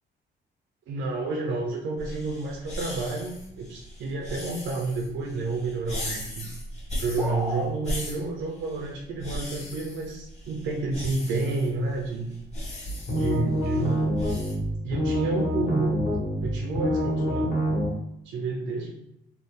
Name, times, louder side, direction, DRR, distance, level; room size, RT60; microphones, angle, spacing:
voice 1, 0.9-6.5 7.0-12.3 13.1-14.1 14.8-16.1 16.4-17.5 18.2-18.9, right 3 dB, 75° right, 1 dB, 0.5 m, -30 dB
sound 1, 2.0-14.5, left 1 dB, 30° left, 1.2 m, -38 dB
sound 2, 7.2-7.7, left 1 dB, 5° right, 0.4 m, -31 dB
sound 3, 12.8-17.9, equal, 50° left, 1.2 m, -26 dB
2.6 x 2.1 x 3.2 m, 0.84 s
cardioid pair, 90°, 20 cm